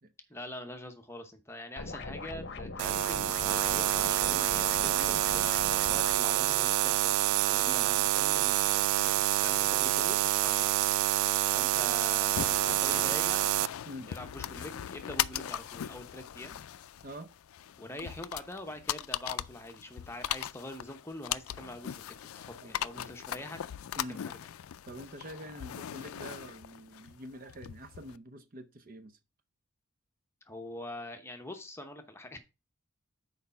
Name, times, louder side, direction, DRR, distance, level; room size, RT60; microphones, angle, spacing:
voice 1, 0.3-10.9 11.5-13.5 14.1-16.6 17.8-23.6 24.1-24.4 30.5-32.4, left 1 dB, 10° left, 0.9 m, -44 dB
sound 1, 1.8-6.2, left 3 dB, 55° left, 0.8 m, -41 dB
sound 2, 2.8-13.7, right 14 dB, 90° right, 0.3 m, -27 dB
voice 2, 11.7-12.1 13.9-14.1 17.0-17.3 18.0-18.1 22.6-23.1 24.0-24.2 24.9-29.2, equal, 40° right, 0.6 m, -46 dB
sound 3, 12.4-28.2, left 11 dB, 85° left, 0.4 m, -39 dB
6.5 x 4.7 x 5.5 m
head